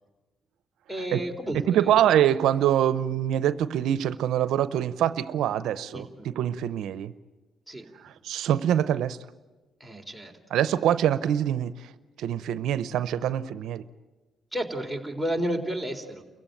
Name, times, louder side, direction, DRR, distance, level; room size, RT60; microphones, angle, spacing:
voice 1, 0.9-2.1 5.9-6.3 7.7-7.9 9.8-10.3 14.5-16.2, right 1 dB, ahead, 7 dB, 3.7 m, -32 dB
voice 2, 1.7-7.1 8.0-9.2 10.5-11.7 12.2-13.8, right 11 dB, 80° right, 14 dB, 0.7 m, -24 dB
29.0 x 15.5 x 9.1 m, 1.2 s
cardioid pair, 90°, 0 cm